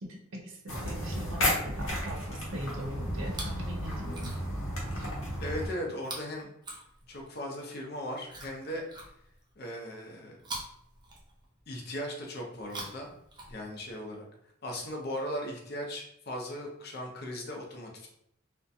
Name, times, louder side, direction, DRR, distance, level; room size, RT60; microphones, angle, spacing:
voice 1, 0.0-4.3 5.0-5.1, equal, 85° right, 1 dB, 0.6 m, -41 dB
sound 1, 0.7-5.7, left 1 dB, 90° left, 0.8 m, -33 dB
Chewing mastication, 3.2-3.7 4.0-4.7 6.0-7.4 8.3-9.5 10.4-11.7 12.5-13.9 14.9-15.0, right 2 dB, 20° right, 0.5 m, -44 dB
voice 2, 5.4-6.5 7.1-8.8 9.6-10.5 11.7-13.1 13.5-14.3 14.6-18.1, equal, 50° left, 0 dB, 0.6 m, -38 dB
2.5 x 2.2 x 2.6 m, 0.74 s
head